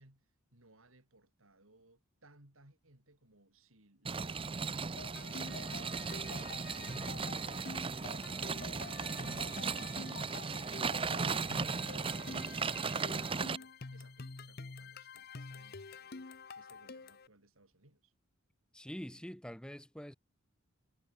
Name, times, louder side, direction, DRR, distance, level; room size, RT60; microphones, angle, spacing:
voice 1, 0.0-5.8 6.3-18.1, right 2 dB, 75° right, 4.8 m, -63 dB
sound 1, 4.0-13.6, right 5 dB, 25° right, 0.6 m, -37 dB
sound 2, 5.0-17.3, left 4 dB, 45° left, 0.9 m, -48 dB
voice 2, 18.7-20.1, equal, 5° left, 1.7 m, -45 dB
head